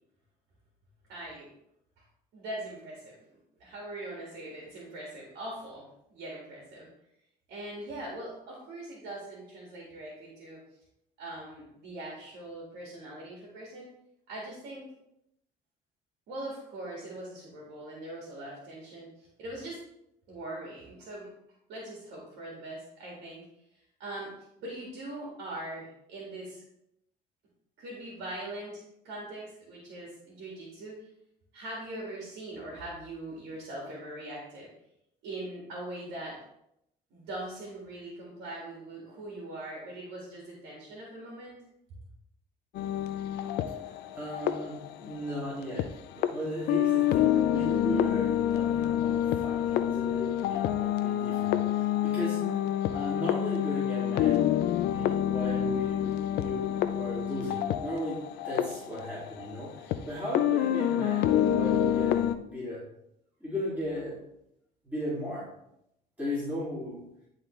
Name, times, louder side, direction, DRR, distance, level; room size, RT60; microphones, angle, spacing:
voice 1, 1.1-1.5 2.3-3.2 3.6-5.8 6.1-6.9 7.5-10.6 11.2-13.9 14.3-14.9 16.3-19.8 20.3-21.3 21.7-23.4 24.0-24.3 24.6-26.6 27.8-31.0 31.5-34.7 35.2-36.4 37.1-41.6, right 1 dB, 80° right, -3 dB, 2.0 m, -41 dB
sound 1, 42.8-45.9 46.2-46.3 46.7-60.0 60.3-62.4, left 11 dB, 75° left, 0.5 m, -27 dB
voice 2, 44.1-52.6 52.9-54.4 54.7-58.2 58.4-61.3 61.5-62.8 63.4-64.2 64.8-65.5 66.2-67.0, equal, 10° right, -8 dB, 2.5 m, -36 dB
10.5 x 3.8 x 3.2 m, 0.79 s
cardioid pair, 110°, 17 cm